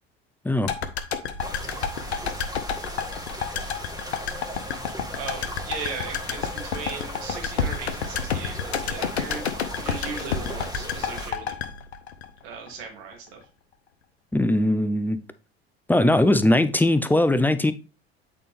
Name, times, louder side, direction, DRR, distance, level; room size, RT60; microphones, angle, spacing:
sound 1, 0.7-12.8 13.1-13.2, left 6 dB, 85° left, 0.7 m, -30 dB
sound 2, 1.4-11.3, equal, 10° right, 1.8 m, -37 dB
voice 1, 1.4-2.4 4.5-9.4 9.8-11.6 12.4-13.4, right 5 dB, 75° right, 2.2 m, -38 dB
voice 2, 14.3-15.2 15.9-17.7, left 1 dB, 5° left, 0.6 m, -20 dB
8.5 x 4.1 x 3.4 m
hypercardioid pair, 65°, 32 cm